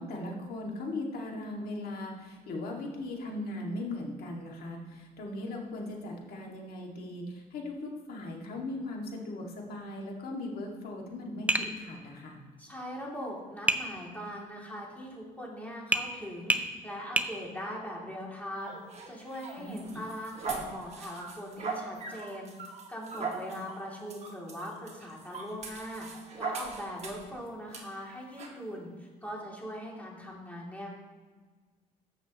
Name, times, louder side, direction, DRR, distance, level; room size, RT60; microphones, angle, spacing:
voice 1, 0.0-12.4 19.6-20.0 23.5-23.6, left 2 dB, 65° left, 0 dB, 2.3 m, -38 dB
Tap, 11.5-11.7 13.7-13.9 15.9-16.1 16.5-16.7 17.2-17.3, right 2 dB, 10° right, 0.6 m, -26 dB
voice 2, 12.6-16.6 16.8-18.8 19.1-22.5 22.9-26.1 26.4-30.9, equal, 10° left, -3 dB, 2.8 m, -40 dB
sound 1, 18.6-27.3 27.7-27.8 28.4-28.6, right 4 dB, 40° right, 1.5 m, -40 dB
14.5 x 6.5 x 3.1 m, 1.4 s
cardioid pair, 110°, 17 cm